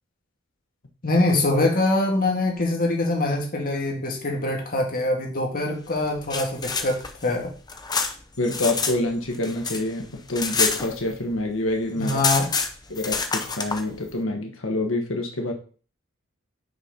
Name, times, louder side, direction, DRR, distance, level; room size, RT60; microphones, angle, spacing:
voice 1, 1.0-7.5 12.0-12.5, left 2 dB, 45° left, 1 dB, 1.8 m, -24 dB
sound 1, 6.0-9.0 9.3-11.4 11.7-11.8 12.0-13.8, left 4 dB, 20° left, 0.7 m, -27 dB
voice 2, 8.4-12.2 12.9-15.5, left 2 dB, 70° left, 3 dB, 1.2 m, -27 dB
6.1 x 4.2 x 5.1 m, 0.40 s
head